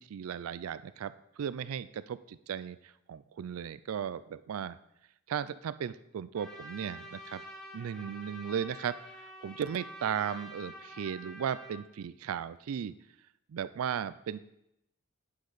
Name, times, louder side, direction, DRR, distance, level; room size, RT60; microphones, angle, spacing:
voice 1, 0.0-4.8 5.3-7.4 7.7-9.0 9.4-12.9 13.5-14.4, right 8 dB, 80° right, 15 dB, 0.4 m, -36 dB
Trumpet, 6.3-11.8, left 1 dB, 5° left, 1.3 m, -47 dB
8.6 x 7.7 x 4.0 m, 0.82 s
head